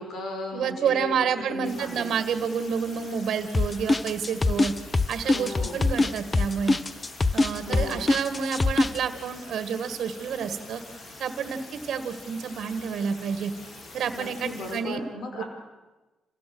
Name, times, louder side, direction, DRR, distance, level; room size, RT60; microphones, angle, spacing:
voice 1, 0.0-1.2 1.5-2.0 5.2-5.9 7.6-8.1 14.1-15.4, left 2 dB, 65° left, 4 dB, 5.1 m, -36 dB
voice 2, 0.5-4.7 5.1-6.8 7.3-10.8 11.2-13.5 13.9-15.0 15.4-15.5, right 7 dB, 70° right, 10 dB, 1.9 m, -29 dB
sound 1, 1.6-14.8, left 2 dB, 50° left, 4.3 m, -45 dB
sound 2, 3.5-9.0, left 3 dB, 25° left, 0.8 m, -23 dB
26.5 x 16.0 x 7.9 m, 1.2 s
cardioid pair, 90°, 0 cm